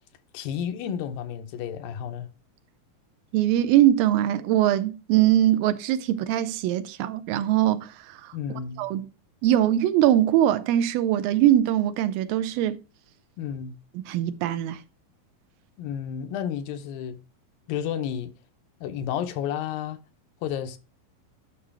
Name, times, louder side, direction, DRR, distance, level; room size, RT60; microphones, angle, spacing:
voice 1, 0.3-2.3 8.3-8.9 13.4-13.8 15.8-17.2 17.7-18.3 18.8-20.0 20.4-20.8, left 9 dB, 80° left, 2.4 m, -31 dB
voice 2, 3.3-8.3 8.8-9.1 9.4-12.8 14.0-14.8, right 12 dB, 80° right, 2.3 m, -22 dB
11.0 x 6.1 x 3.3 m
omnidirectional pair, 4.1 m